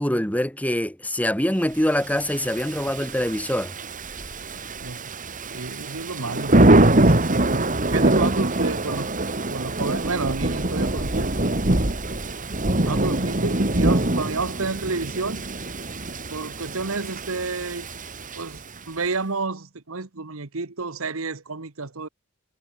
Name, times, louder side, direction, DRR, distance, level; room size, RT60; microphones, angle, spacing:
voice 1, 0.0-3.7, left 1 dB, 5° left, 3.3 m, -24 dB
Thunder / Rain, 2.2-18.8, right 1 dB, 40° right, 2.7 m, -23 dB
voice 2, 5.5-7.7 7.9-9.1 9.5-11.3 12.9-15.5 16.1-17.9 18.3-22.1, right 3 dB, 70° right, 1.4 m, -30 dB
head